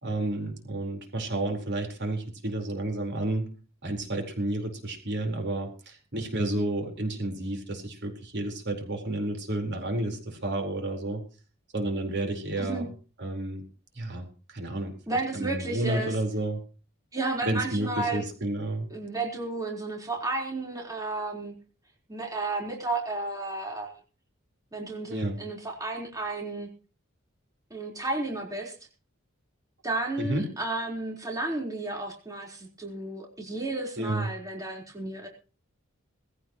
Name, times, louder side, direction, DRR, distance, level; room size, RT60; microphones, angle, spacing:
voice 1, 0.0-3.5 3.8-11.2 11.7-12.9 13.2-13.7 14.0-14.9 15.3-16.6 17.4-18.9 25.1-25.4 30.2-30.5 34.0-34.3, right 1 dB, 55° right, 3 dB, 4.3 m, -31 dB
voice 2, 15.1-16.1 17.1-18.2 18.9-21.5 22.1-24.0 24.7-26.7 27.7-28.7 29.8-35.3, right 2 dB, 15° right, 0 dB, 4.2 m, -32 dB
20.0 x 16.0 x 3.1 m, 0.36 s
head